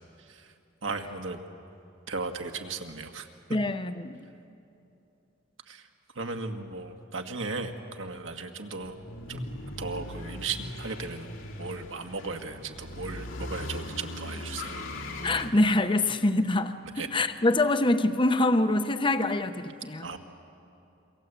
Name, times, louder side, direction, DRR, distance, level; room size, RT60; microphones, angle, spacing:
voice 1, 0.8-1.4 2.1-3.3 5.7-5.8 6.2-9.0 9.3-9.5 9.8-11.3 11.6-14.9 17.0-17.1 20.0-20.2, right 4 dB, 75° right, 5 dB, 1.8 m, -36 dB
voice 2, 3.5-4.2 15.2-20.1, left 2 dB, 25° left, 10 dB, 0.8 m, -25 dB
sound 1, 8.8-15.5, left 1 dB, 85° left, 2.8 m, -39 dB
27.5 x 23.5 x 8.2 m, 2.8 s
head